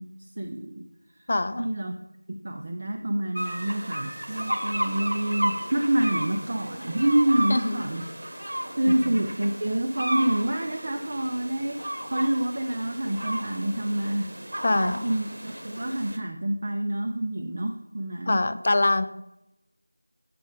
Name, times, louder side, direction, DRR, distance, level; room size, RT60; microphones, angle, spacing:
voice 1, 0.0-1.3 1.6-1.9 2.3-8.0 8.8-18.5, right 1 dB, 35° right, 5 dB, 0.5 m, -27 dB
voice 2, 1.3-1.7 7.5-8.0 8.9-9.3 14.6-15.1 18.3-19.1, left 2 dB, 30° left, 12 dB, 0.4 m, -25 dB
sound 1, 3.3-16.2, right 1 dB, 60° right, 0.9 m, -34 dB
8.4 x 6.1 x 3.7 m, 0.89 s
figure-of-eight pair, 170°, 0 cm